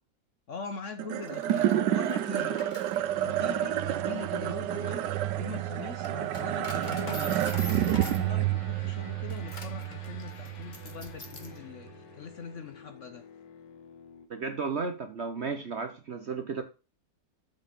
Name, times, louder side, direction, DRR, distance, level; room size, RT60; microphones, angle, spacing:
voice 1, 0.5-2.6 3.2-5.1 5.4-13.2, left 5 dB, 60° left, 0.9 m, -42 dB
sound 1, 1.0-11.5, right 12 dB, 80° right, 1.2 m, -30 dB
Coin (dropping), 1.1-11.6, left 2 dB, 30° left, 1.2 m, -46 dB
sound 2, 6.7-14.3, left 7 dB, 85° left, 1.8 m, -51 dB
voice 2, 14.3-16.6, right 4 dB, 55° right, 0.8 m, -33 dB
7.4 x 5.3 x 5.2 m
omnidirectional pair, 1.9 m